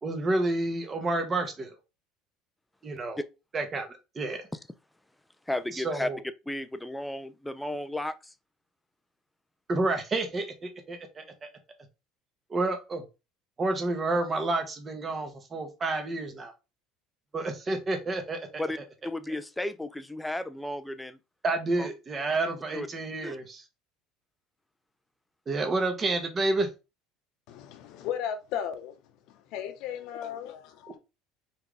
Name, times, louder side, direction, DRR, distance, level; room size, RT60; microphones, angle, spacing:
voice 1, 0.0-1.7 2.8-3.2 3.5-3.9 4.1-4.5 5.7-6.2 9.7-11.5 12.5-13.0 13.6-16.5 17.3-18.6 21.4-23.6 25.5-26.7, right 2 dB, 25° right, 1.2 m, -29 dB
voice 2, 5.5-6.1 6.5-8.3 18.6-18.8 19.0-21.2 21.8-21.9 22.7-22.9 23.2-23.4, left 1 dB, 5° left, 0.5 m, -33 dB
voice 3, 27.5-29.0 29.3-31.0, left 9 dB, 65° left, 0.9 m, -35 dB
4.5 x 3.5 x 3.3 m
supercardioid pair, 115°, 0 cm